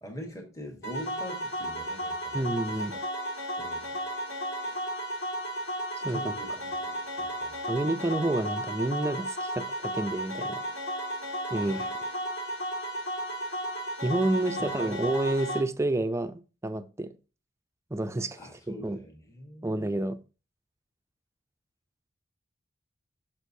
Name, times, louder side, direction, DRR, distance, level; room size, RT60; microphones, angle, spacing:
voice 1, 0.0-3.0 3.6-4.0 4.6-4.8 6.1-7.7 11.5-11.9 14.6-14.9 18.4-19.9, equal, 15° left, 1.3 m, -44 dB
sound 1, 0.8-15.6, equal, 70° left, 1.9 m, -34 dB
voice 2, 2.3-2.9 6.0-6.3 7.7-10.6 11.5-11.8 14.0-17.1 17.9-18.4 18.7-19.0 19.6-20.2, right 1 dB, 15° right, 0.4 m, -29 dB
6.4 x 6.0 x 2.6 m
head